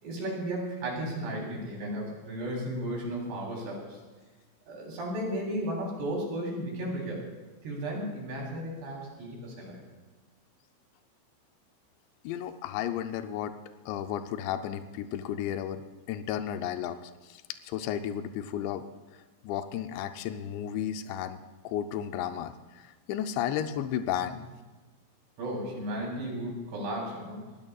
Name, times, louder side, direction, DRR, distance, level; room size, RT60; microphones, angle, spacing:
voice 1, 0.0-4.0 4.7-7.3 7.6-9.8 24.2-24.4 25.4-27.5, right 1 dB, 55° right, -2 dB, 5.3 m, -34 dB
voice 2, 12.2-13.5 13.9-18.9 19.4-24.4, left 10 dB, 85° left, 8 dB, 2.5 m, -33 dB
22.5 x 17.5 x 2.4 m, 1.3 s
omnidirectional pair, 5.9 m